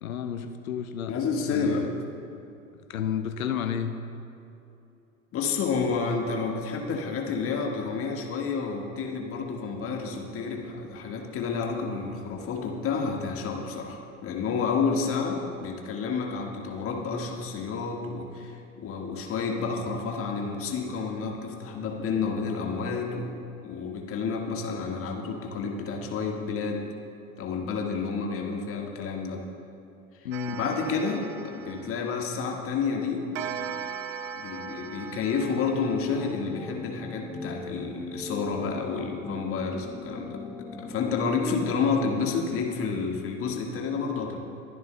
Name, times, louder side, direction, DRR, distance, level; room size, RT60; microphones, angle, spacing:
voice 1, 0.0-1.9 2.9-4.0 30.2-30.6, left 8 dB, 70° left, 8 dB, 0.9 m, -32 dB
voice 2, 1.1-1.8 5.3-23.3 23.6-26.9 27.4-29.4 30.2-33.3 34.3-44.4, left 5 dB, 30° left, 1 dB, 1.6 m, -30 dB
Clock, 30.3-32.6 33.3-36.7, right 7 dB, 45° right, 0.8 m, -39 dB
sound 1, 36.1-42.3, left 2 dB, 5° left, 0.5 m, -39 dB
22.0 x 11.0 x 2.2 m, 2.7 s
figure-of-eight pair, 85°, 42 cm